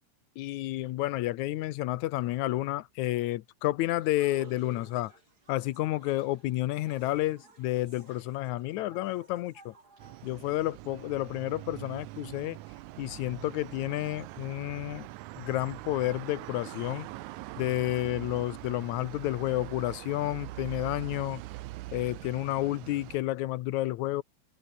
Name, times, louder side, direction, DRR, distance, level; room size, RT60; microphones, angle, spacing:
voice 1, 0.4-5.1 5.5-9.7 10.2-12.6 13.0-15.1 15.4-17.1 17.6-21.4 21.9-24.2, left 16 dB, 75° left, 2.0 m, -30 dB
sound 1, 4.0-10.9, right 3 dB, 30° right, 3.9 m, -55 dB
sound 2, 10.0-23.2, right 18 dB, 75° right, 2.0 m, -43 dB
omnidirectional pair, 3.6 m